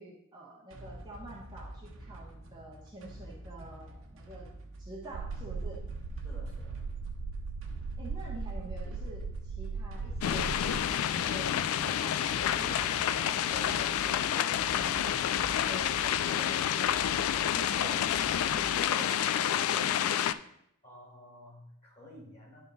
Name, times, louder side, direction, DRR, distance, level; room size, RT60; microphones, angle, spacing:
voice 1, 0.0-4.5 4.8-5.8 8.0-15.2 15.6-17.0 17.3-18.1 18.5-20.2, right 1 dB, 20° right, -5 dB, 1.1 m, -46 dB
sound 1, 0.7-19.1, right 1 dB, 60° right, 0.9 m, -48 dB
sound 2, 5.1-10.8, right 4 dB, 85° right, 0.3 m, -38 dB
voice 2, 6.2-6.8 20.8-22.6, left 1 dB, 30° left, -6 dB, 2.6 m, -51 dB
sound 3, 10.2-20.3, left 10 dB, 75° left, 0.3 m, -29 dB
10.0 x 3.6 x 4.0 m, 0.75 s
head